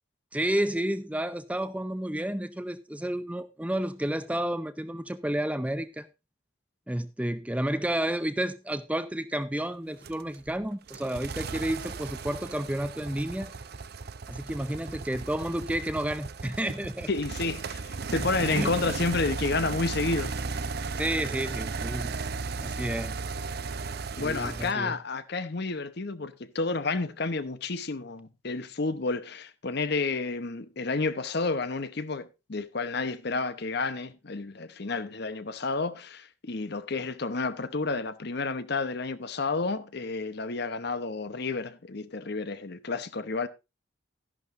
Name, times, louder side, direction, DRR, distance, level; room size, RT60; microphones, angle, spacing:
voice 1, 0.3-6.1 6.9-13.5 14.3-17.1 18.2-18.9 21.0-22.1 22.6-23.2 24.2-25.0, right 1 dB, 5° right, 0.5 m, -31 dB
sound 1, 10.0-24.7, right 4 dB, 50° right, 0.6 m, -35 dB
voice 2, 17.1-20.4 24.2-43.5, left 3 dB, 50° left, 0.8 m, -30 dB
13.0 x 11.0 x 2.5 m
head